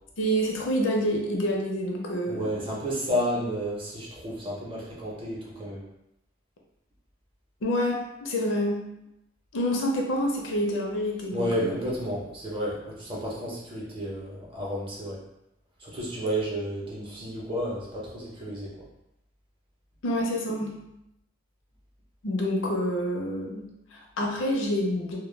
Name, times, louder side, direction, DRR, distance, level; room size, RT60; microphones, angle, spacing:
voice 1, 0.2-2.7 7.6-8.9 9.5-11.8 20.0-20.8 22.2-25.2, equal, 80° left, 0 dB, 0.5 m, -27 dB
voice 2, 2.3-5.8 11.3-15.2 15.8-18.8, equal, 25° right, -4 dB, 0.6 m, -31 dB
2.2 x 2.1 x 3.1 m, 0.85 s
head